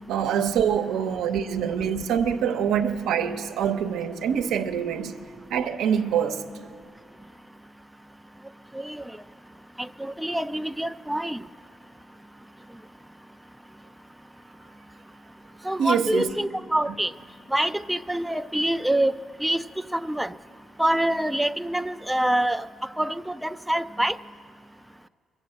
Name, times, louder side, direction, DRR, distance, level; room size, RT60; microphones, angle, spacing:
voice 1, 0.1-5.1 5.5-6.4 15.8-16.3, right 8 dB, 90° right, 0.8 m, -25 dB
voice 2, 9.8-11.4 15.6-17.1 17.5-19.1 19.4-19.6 19.9-20.3 20.8-22.7 23.0-24.2, right 1 dB, 5° right, 0.3 m, -25 dB
22.5 x 7.8 x 7.8 m
cardioid pair, 85°, 0 cm